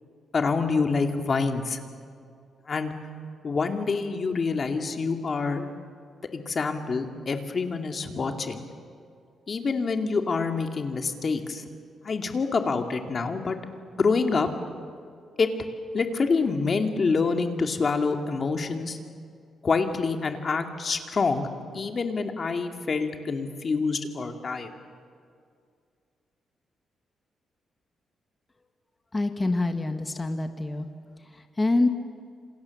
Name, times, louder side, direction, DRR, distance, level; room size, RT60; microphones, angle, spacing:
voice 1, 0.3-1.8 2.7-2.9 3.4-5.7 6.3-8.6 9.5-11.6 12.0-13.6 14.0-14.5 15.4-15.5 15.9-19.0 19.6-21.5 21.7-24.8, left 4 dB, 40° left, 5 dB, 2.3 m, -26 dB
voice 2, 29.1-30.9 31.6-31.9, left 2 dB, 20° left, 7 dB, 1.6 m, -25 dB
28.0 x 27.0 x 7.2 m, 2.3 s
cardioid pair, 120°, 0 cm